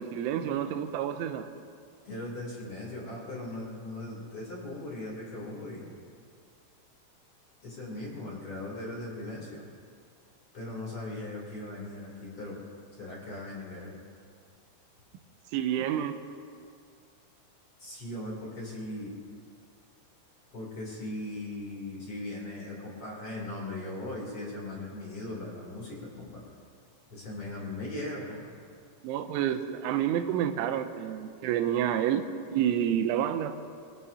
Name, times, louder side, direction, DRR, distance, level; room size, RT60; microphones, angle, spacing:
voice 1, 0.0-1.5 15.5-16.2 29.0-32.2 32.5-33.6, right 10 dB, 90° right, 8 dB, 3.2 m, -29 dB
voice 2, 2.0-5.9 7.6-9.6 10.5-12.6 13.0-14.0 17.8-19.2 20.5-26.4 27.1-28.6, left 2 dB, 35° left, -3 dB, 3.4 m, -39 dB
25.5 x 17.5 x 2.8 m, 2.3 s
omnidirectional pair, 5.3 m